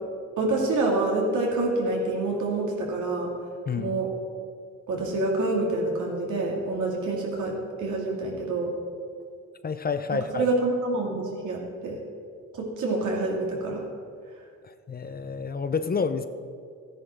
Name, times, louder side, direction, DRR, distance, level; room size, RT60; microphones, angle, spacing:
voice 1, 0.4-3.3 3.8-4.1 4.9-8.7 10.3-12.0 12.6-13.9, right 2 dB, 80° right, -2 dB, 3.0 m, -27 dB
voice 2, 3.7-4.0 9.6-10.5 14.6-16.3, left 5 dB, 30° left, 10 dB, 0.7 m, -29 dB
14.0 x 10.0 x 4.6 m, 2.2 s
cardioid pair, 90°, 30 cm